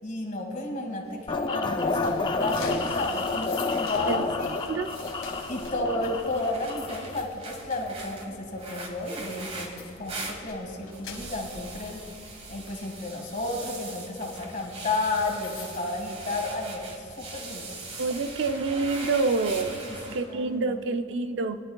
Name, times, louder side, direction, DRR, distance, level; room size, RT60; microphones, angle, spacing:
voice 1, 0.0-4.6 5.5-12.0 12.5-17.8 19.8-20.8, left 2 dB, 40° left, 1 dB, 1.7 m, -32 dB
sound 1, 1.0-17.0 17.3-17.6 18.1-19.7, left 4 dB, 85° left, 1.6 m, -48 dB
sound 2, 1.3-7.2, left 3 dB, 25° left, 0.5 m, -30 dB
sound 3, 2.3-20.2, right 2 dB, 30° right, 1.2 m, -42 dB
voice 2, 18.0-19.8 20.1-21.6, right 3 dB, 60° right, 9 dB, 0.5 m, -27 dB
22.0 x 11.0 x 2.3 m, 2.8 s
head